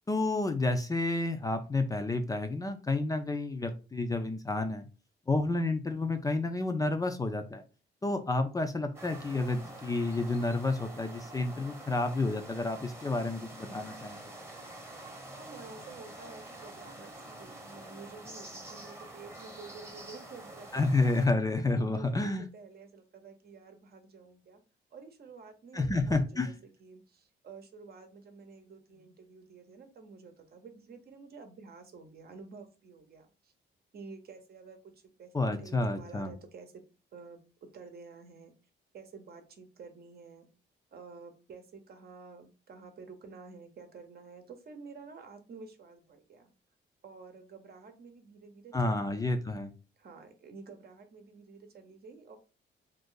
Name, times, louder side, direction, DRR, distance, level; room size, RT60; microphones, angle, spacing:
voice 1, 0.1-4.9 5.3-7.6 8.0-14.4 20.7-22.4 25.7-26.5 35.3-36.3 48.7-49.7, left 2 dB, 15° left, 6 dB, 0.4 m, -30 dB
sound 1, 8.9-21.3, right 1 dB, 10° right, 0.9 m, -47 dB
voice 2, 15.3-24.6 24.9-33.5 33.9-34.9 35.2-36.7 37.1-37.4 37.7-38.5 38.9-40.5 40.9-46.5 47.0-49.4 50.0-52.4, right 4 dB, 50° right, 6 dB, 0.8 m, -50 dB
2.6 x 2.6 x 3.7 m, 0.32 s
cardioid pair, 90°, 20 cm